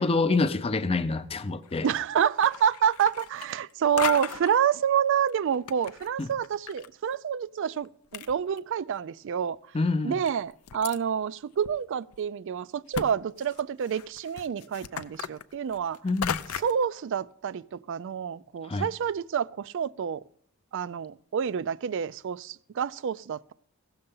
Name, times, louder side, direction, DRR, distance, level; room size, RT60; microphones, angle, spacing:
voice 1, 0.0-1.9 6.2-6.3 9.7-10.1 16.0-16.4 18.7-18.9, left 3 dB, 25° left, 0.5 m, -26 dB
sound 1, 1.6-2.0 2.3-3.7 4.0-4.6 5.3-6.9 7.1-7.2 7.8-7.9 8.1-8.9 9.5-9.6 10.3-11.0 11.6-11.7 12.1-12.2 12.9-13.1 13.4-16.8, left 8 dB, 85° left, 0.5 m, -36 dB
voice 2, 1.8-9.6 10.0-16.0 16.5-20.2 20.7-23.5, right 8 dB, 60° right, 0.3 m, -28 dB
16.0 x 6.8 x 5.4 m
head